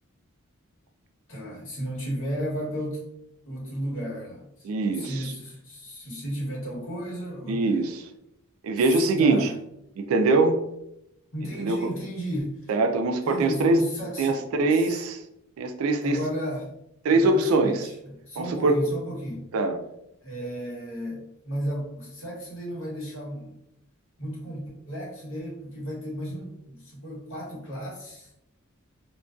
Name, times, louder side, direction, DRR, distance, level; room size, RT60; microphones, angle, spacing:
voice 1, 1.3-3.0 3.4-7.6 8.8-9.5 11.3-12.7 13.2-14.4 14.7-14.9 16.0-16.7 17.1-19.5 20.2-23.5 24.2-28.3, equal, 65° left, -5 dB, 1.0 m, -34 dB
voice 2, 4.6-5.3 7.5-8.1 8.6-9.5 10.0-10.6 11.6-11.8 12.7-13.8 14.2-15.2 15.6-16.2 17.0-17.9 18.4-18.8 19.5-19.8, right 3 dB, 70° right, 6 dB, 0.3 m, -23 dB
2.5 x 2.2 x 2.3 m, 0.82 s
head